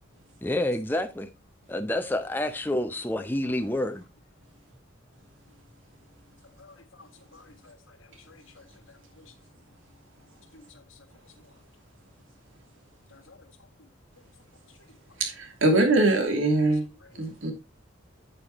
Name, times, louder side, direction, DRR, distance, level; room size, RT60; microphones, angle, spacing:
voice 1, 0.4-1.3 1.7-4.0, left 1 dB, 10° left, 0.6 m, -28 dB
voice 2, 6.6-8.6 9.2-9.3 10.5-11.0 13.1-13.4 13.8-13.9 17.0-17.2, left 3 dB, 90° left, 1.8 m, -54 dB
voice 3, 15.2-16.8 17.2-17.5, right 2 dB, 85° right, 2.7 m, -22 dB
8.9 x 8.4 x 3.0 m
head